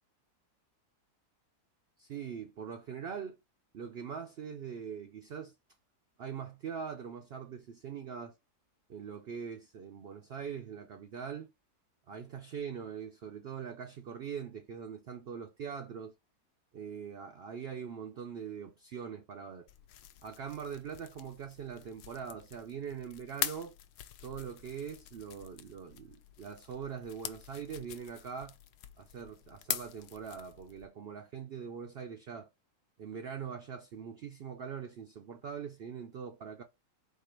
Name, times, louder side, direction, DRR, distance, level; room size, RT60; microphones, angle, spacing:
voice 1, 2.0-3.4 3.7-5.5 6.2-8.3 8.9-11.5 12.1-16.1 16.7-19.7 20.2-23.8 24.2-28.6 29.0-32.5 33.0-36.6, right 7 dB, 85° right, 0.5 m, -42 dB
sound 1, 19.7-30.9, left 12 dB, 85° left, 1.1 m, -44 dB
4.5 x 2.5 x 4.4 m
omnidirectional pair, 1.7 m